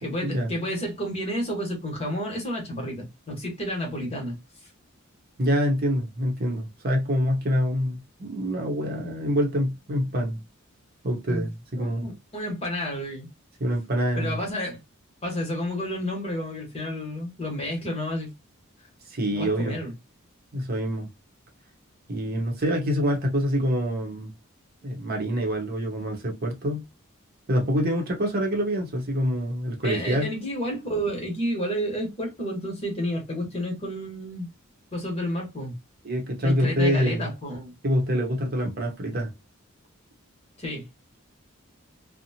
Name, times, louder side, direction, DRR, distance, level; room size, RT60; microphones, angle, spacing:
voice 1, 0.0-4.4 11.3-11.5 11.8-13.3 14.2-14.8 15.2-18.3 19.3-19.9 29.8-34.5 34.9-35.8 36.4-37.7 40.6-40.9, equal, 30° left, 1.1 m, -30 dB
voice 2, 5.4-10.4 11.0-12.1 13.6-14.4 19.1-19.8 20.5-21.1 22.1-24.3 24.8-26.8 27.5-30.3 36.0-37.3 37.8-39.3, equal, 45° right, 0.8 m, -26 dB
2.8 x 2.1 x 2.8 m
head